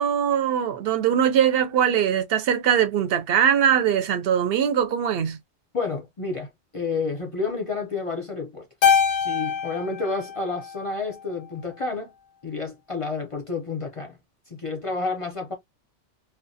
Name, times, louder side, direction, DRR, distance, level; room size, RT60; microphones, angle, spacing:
voice 1, 0.0-5.4, right 9 dB, 65° right, 0.7 m, -21 dB
voice 2, 5.7-8.7 9.2-12.1 12.4-14.2 14.5-15.5, left 4 dB, 40° left, 0.5 m, -30 dB
Keyboard (musical), 8.8-11.3, left 7 dB, 85° left, 0.9 m, -24 dB
2.3 x 2.1 x 2.6 m
omnidirectional pair, 1.2 m